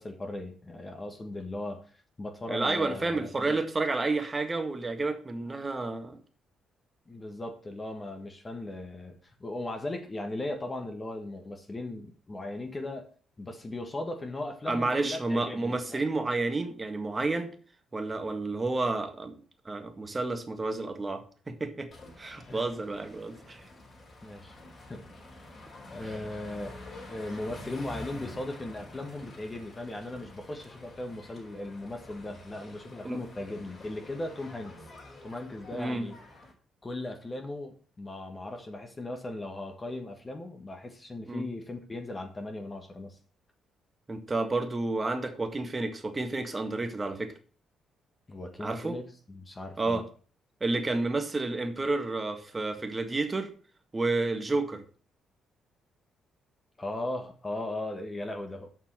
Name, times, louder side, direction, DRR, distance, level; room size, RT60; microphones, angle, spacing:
voice 1, 0.0-1.8 2.2-3.6 7.1-13.0 13.4-16.1 22.5-22.6 24.2-25.0 25.3-25.5 25.9-26.8 27.1-34.7 35.2-36.2 36.8-43.2 48.3-50.0 56.8-58.7, left 2 dB, 25° left, 4 dB, 1.5 m, -38 dB
voice 2, 2.5-6.2 14.7-17.5 17.9-19.3 19.6-21.9 22.2-23.6 26.0-26.1 33.0-33.2 35.7-36.1 41.3-41.4 44.1-47.3 48.6-49.0 49.8-50.0 50.6-53.5 53.9-54.8, right 3 dB, 25° right, 6 dB, 1.7 m, -30 dB
sound 1, 21.9-36.5, left 2 dB, 40° left, 4.4 m, -48 dB
7.4 x 5.6 x 7.4 m, 0.42 s
cardioid pair, 90°, 0 cm